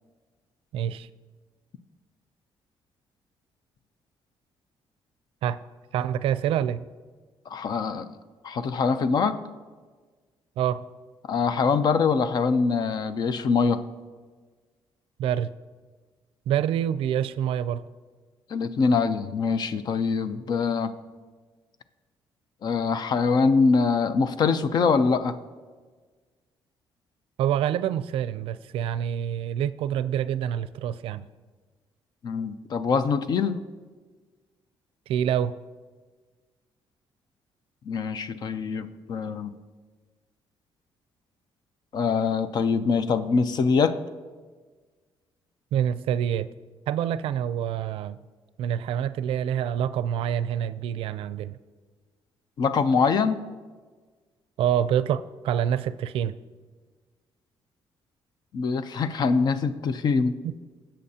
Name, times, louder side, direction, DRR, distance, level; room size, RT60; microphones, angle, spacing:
voice 1, 0.7-1.1 5.4-5.6 5.9-6.9 10.6-10.8 15.2-15.5 16.5-17.8 27.4-31.2 35.1-35.5 45.7-46.5 46.9-48.2 48.6-51.6 54.6-56.3 60.4-60.5, right 9 dB, 90° right, 15 dB, 0.4 m, -26 dB
voice 2, 7.5-8.1 8.4-9.4 11.3-13.8 18.5-20.9 22.6-25.4 32.2-33.6 37.9-39.5 41.9-44.0 52.6-53.4 58.5-60.4, left 5 dB, 50° left, 12 dB, 0.5 m, -23 dB
17.0 x 7.7 x 2.8 m, 1.4 s
cardioid pair, 145°, 9 cm